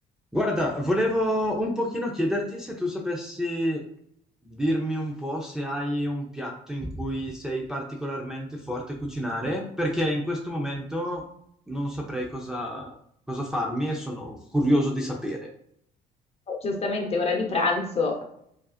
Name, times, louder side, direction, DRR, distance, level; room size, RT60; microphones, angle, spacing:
voice 1, 0.3-3.8 4.4-11.2 11.7-12.9 13.3-15.5, equal, 5° right, -2 dB, 0.6 m, -28 dB
voice 2, 16.5-18.2, left 3 dB, 35° left, 2 dB, 1.0 m, -26 dB
5.2 x 2.6 x 2.4 m, 0.72 s
cardioid pair, 110°, 17 cm